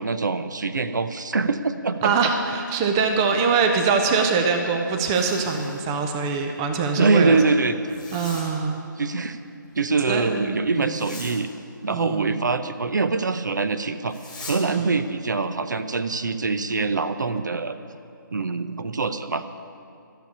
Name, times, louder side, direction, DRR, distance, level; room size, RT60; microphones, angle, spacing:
voice 1, 0.0-2.1 7.0-7.8 9.0-9.4 9.8-11.5 11.8-14.2 14.4-17.8 18.3-19.4, right 4 dB, 60° right, 10 dB, 0.7 m, -24 dB
voice 2, 2.0-7.4 8.1-8.8 10.1-11.0 11.9-12.4 14.7-14.9, right 5 dB, 15° right, 5 dB, 0.4 m, -23 dB
Zipper (clothing), 4.8-5.9 7.9-8.5 10.8-11.4 14.1-14.6, left 2 dB, 5° left, 1.5 m, -40 dB
13.0 x 7.0 x 9.6 m, 2.5 s
figure-of-eight pair, 155°, 11 cm